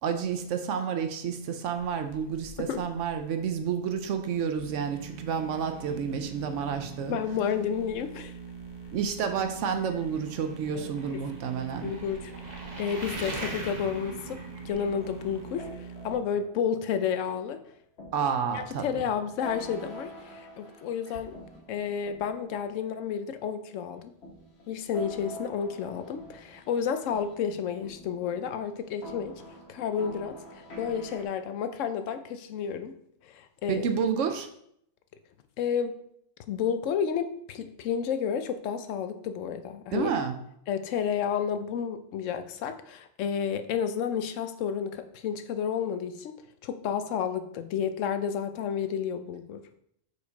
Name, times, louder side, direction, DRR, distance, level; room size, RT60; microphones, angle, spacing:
voice 1, 0.0-7.2 8.9-11.9 18.1-19.0 33.7-34.5 39.9-40.4, right 7 dB, 75° right, 8 dB, 1.0 m, -30 dB
sound 1, 1.7-15.7, right 2 dB, 35° right, 0.9 m, -45 dB
sound 2, 4.6-16.1, right 5 dB, 35° left, 0.8 m, -44 dB
voice 2, 7.1-8.3 10.8-10.9 11.6-14.4 14.6-17.6 18.5-21.4 21.7-24.1 24.7-29.3 29.7-32.9 33.2-33.9 35.6-36.0 36.5-40.1 40.7-46.3 46.6-49.6, left 7 dB, 75° left, 9 dB, 0.9 m, -31 dB
sound 3, 14.9-17.3 18.0-23.4 24.2-31.2, equal, 55° left, 1.3 m, -46 dB
5.0 x 4.8 x 4.0 m, 0.71 s
omnidirectional pair, 1.3 m